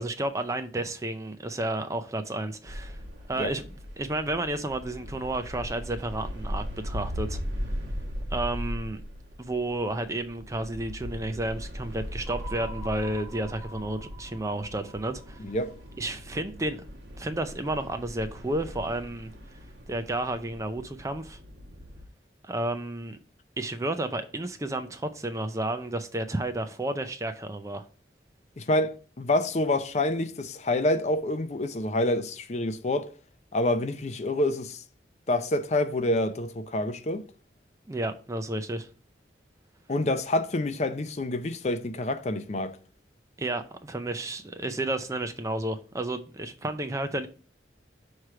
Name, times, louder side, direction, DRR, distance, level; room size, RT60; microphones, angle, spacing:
voice 1, 0.0-3.0 3.3-3.7 4.0-7.4 8.3-9.0 9.4-15.4 16.0-16.8 17.2-19.3 19.9-21.4 22.4-23.2 23.6-27.9 37.9-38.9 43.4-47.3, right 1 dB, 15° right, 0.4 m, -31 dB
sound 1, 2.7-22.1, equal, 70° right, 1.3 m, -39 dB
sound 2, 12.3-16.5, right 3 dB, ahead, 1.2 m, -46 dB
voice 2, 28.6-33.1 33.5-34.8 35.3-37.2 39.9-42.8, left 1 dB, 40° left, 0.5 m, -27 dB
6.1 x 3.2 x 5.7 m
head